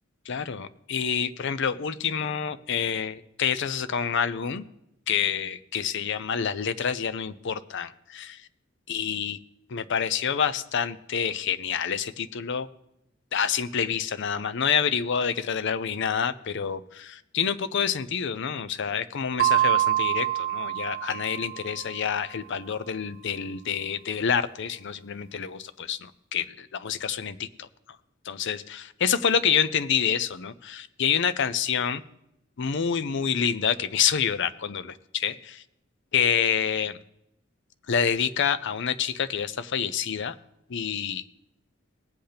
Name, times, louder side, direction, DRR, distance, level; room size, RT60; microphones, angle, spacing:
voice 1, 0.3-4.7 5.1-8.4 8.9-9.4 9.7-12.7 13.3-27.7 28.3-32.0 32.6-35.6 36.1-37.0 37.9-40.3 40.7-41.2, left 7 dB, 60° left, 14 dB, 0.6 m, -27 dB
sound 1, 19.4-21.9, right 13 dB, 45° right, 0.6 m, -25 dB
19.0 x 7.9 x 3.4 m, 0.83 s
head